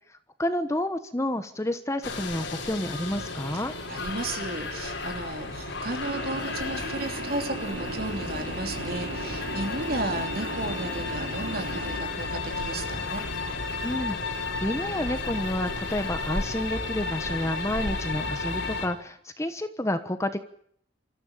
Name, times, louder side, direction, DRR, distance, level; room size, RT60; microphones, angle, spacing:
voice 1, 0.4-3.7 13.8-20.4, left 1 dB, 15° left, 9 dB, 1.2 m, -30 dB
sound 1, 2.0-18.9, left 3 dB, 85° left, 4.5 m, -33 dB
voice 2, 3.9-13.2, right 2 dB, 50° right, 5 dB, 3.1 m, -34 dB
sound 2, 6.0-12.0, right 2 dB, 75° right, 3.0 m, -37 dB
27.0 x 14.0 x 8.8 m, 0.66 s
head